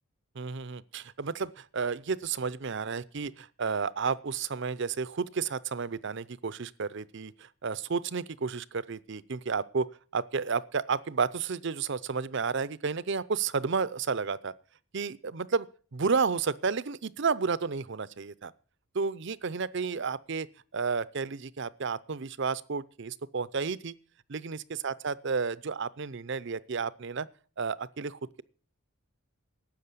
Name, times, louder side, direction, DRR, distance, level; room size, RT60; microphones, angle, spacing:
voice 1, 0.4-9.9 10.1-14.5 14.9-18.5 18.9-20.5 20.7-23.9 24.3-27.3 27.6-28.4, right 5 dB, 55° right, 0.6 m, -32 dB
12.5 x 8.5 x 8.3 m
head